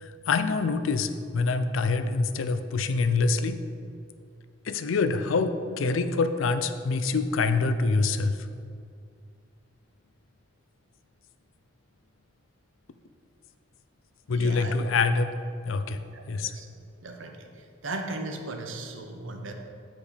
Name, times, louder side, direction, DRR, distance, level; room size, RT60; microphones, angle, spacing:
voice 1, 0.0-3.6 4.7-8.4 14.3-15.4 15.6-16.0 16.3-16.5, left 4 dB, 90° left, 10 dB, 0.5 m, -25 dB
voice 2, 14.3-14.7 16.1-16.7 17.0-19.5, right 2 dB, 80° right, 4 dB, 0.9 m, -37 dB
8.5 x 5.0 x 5.1 m, 2.3 s
head